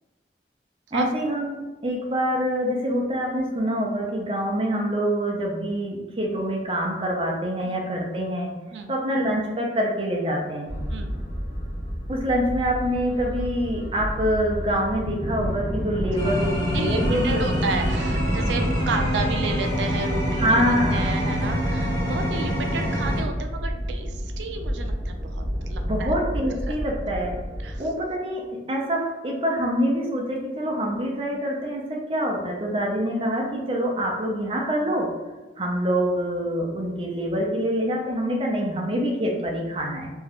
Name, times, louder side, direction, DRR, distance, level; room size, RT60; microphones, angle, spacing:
voice 1, 0.9-8.6 8.9-10.7 12.1-17.6 20.4-21.2 25.8-27.4 27.8-35.1 35.6-40.1, equal, 30° right, -1 dB, 0.5 m, -25 dB
sound 1, 10.7-27.8, equal, 45° left, 0.6 m, -31 dB
sound 2, 15.0-23.2, equal, 20° left, 1.1 m, -26 dB
voice 2, 16.7-26.2 26.7-26.8 27.6-27.8, right 3 dB, 90° right, 5 dB, 0.4 m, -32 dB
2.6 x 2.3 x 3.4 m, 1.2 s
head